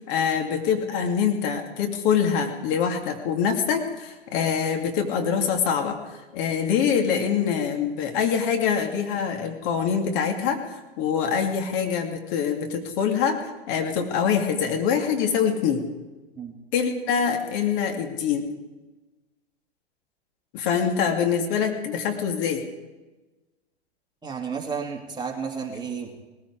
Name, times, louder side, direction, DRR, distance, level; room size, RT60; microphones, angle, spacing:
voice 1, 0.1-15.9 16.7-18.5 20.5-22.6, left 7 dB, 50° left, 4 dB, 2.5 m, -24 dB
voice 2, 24.2-26.1, right 6 dB, 15° right, 0 dB, 2.5 m, -32 dB
19.5 x 14.5 x 4.8 m, 1.2 s
hypercardioid pair, 105°, 33 cm